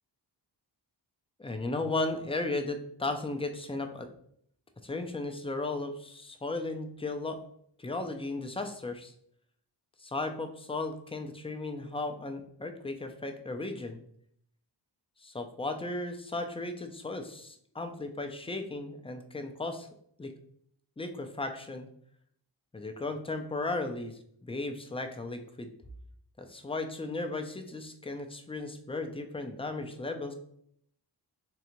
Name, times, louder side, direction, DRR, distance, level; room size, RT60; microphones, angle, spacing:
voice 1, 1.4-4.1 4.8-7.4 7.8-9.1 10.0-14.0 15.2-19.9 20.2-20.3 21.0-21.9 22.7-25.7 26.4-30.3, left 2 dB, 15° left, 5 dB, 0.4 m, -35 dB
3.8 x 3.3 x 2.9 m, 0.68 s
cardioid pair, 70°, 44 cm